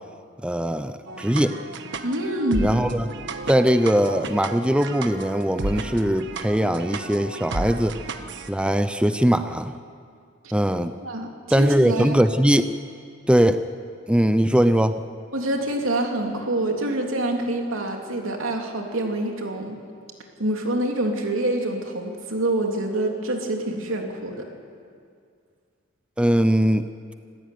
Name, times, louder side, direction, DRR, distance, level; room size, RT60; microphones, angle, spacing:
voice 1, 0.4-1.6 2.6-3.1 3.5-8.0 8.5-9.8 10.5-10.9 11.5-12.7 13.3-13.6 14.1-15.1 26.2-26.8, equal, 5° right, 10 dB, 0.6 m, -20 dB
sound 1, 1.1-8.5, right 2 dB, 65° right, 1.4 m, -33 dB
voice 2, 2.0-2.8 11.0-11.3 11.6-12.2 15.3-19.8 20.4-24.5, right 1 dB, 80° right, 2 dB, 3.3 m, -26 dB
26.0 x 15.5 x 9.4 m, 2.3 s
head